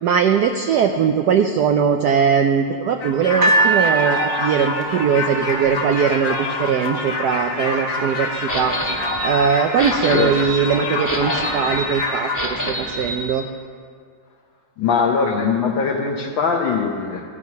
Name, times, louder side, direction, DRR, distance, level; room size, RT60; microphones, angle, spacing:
voice 1, 0.0-8.8 9.2-13.5, right 7 dB, 75° right, 5 dB, 0.9 m, -20 dB
sound 1, 3.0-12.4, left 2 dB, 85° left, 2.4 m, -26 dB
sound 2, 3.4-6.6 7.4-7.5, right 3 dB, 25° right, 1.0 m, -22 dB
sound 3, 8.5-13.3, equal, 10° left, 1.5 m, -28 dB
voice 2, 14.8-17.2, left 5 dB, 70° left, 1 dB, 1.5 m, -21 dB
13.5 x 9.3 x 5.8 m, 2.1 s
omnidirectional pair, 2.3 m